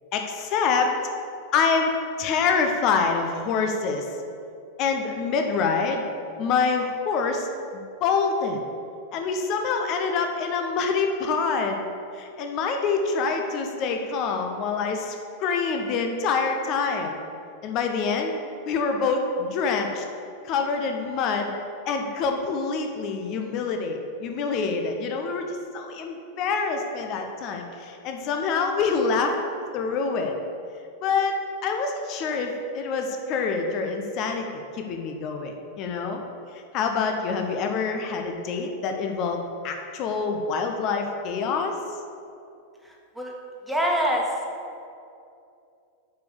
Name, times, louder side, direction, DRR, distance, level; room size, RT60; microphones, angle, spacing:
voice 1, 0.1-0.9 1.5-1.9 2.2-4.2 4.8-6.1 6.4-7.5 7.7-8.6 9.1-11.9 12.1-17.2 17.6-18.4 18.7-20.0 20.4-21.5 21.9-29.4 29.7-30.3 31.0-34.5 34.7-36.2 36.7-41.8, left 5 dB, 40° left, 4 dB, 0.8 m, -26 dB
voice 2, 43.7-44.3, equal, ahead, -2 dB, 1.5 m, -24 dB
8.0 x 5.3 x 6.8 m, 2.5 s
figure-of-eight pair, 90°, 0 cm